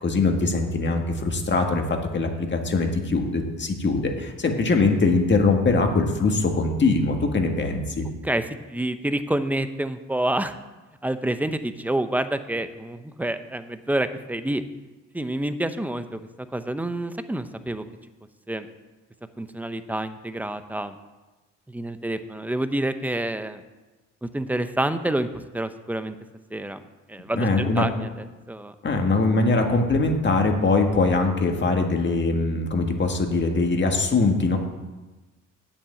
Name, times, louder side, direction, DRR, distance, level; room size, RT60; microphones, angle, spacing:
voice 1, 0.0-1.8 2.1-8.1 27.3-27.8 28.8-34.6, left 3 dB, 35° left, 3 dB, 1.8 m, -22 dB
voice 2, 8.2-10.5 11.0-14.6 15.1-16.2 16.5-17.8 18.5-18.7 19.4-21.0 21.7-23.6 24.2-25.3 25.5-26.1 26.5-28.7, right 1 dB, 5° right, 10 dB, 0.7 m, -28 dB
8.5 x 7.2 x 7.6 m, 1.2 s
cardioid pair, 90°, 30 cm